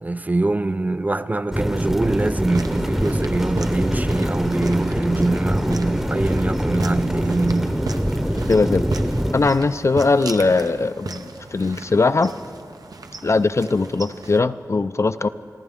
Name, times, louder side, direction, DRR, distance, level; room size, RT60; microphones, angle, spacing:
voice 1, 0.0-7.8 8.4-8.5, right 2 dB, 25° right, 0.3 m, -23 dB
sound 1, 1.5-9.4, equal, 5° right, 0.8 m, -23 dB
sound 2, 2.4-14.4, right 3 dB, 80° right, 0.7 m, -35 dB
voice 2, 8.5-8.9 9.3-12.3 13.2-15.3, left 3 dB, 50° left, 0.4 m, -20 dB
25.5 x 14.5 x 3.6 m
wide cardioid pair, 80°, 6 cm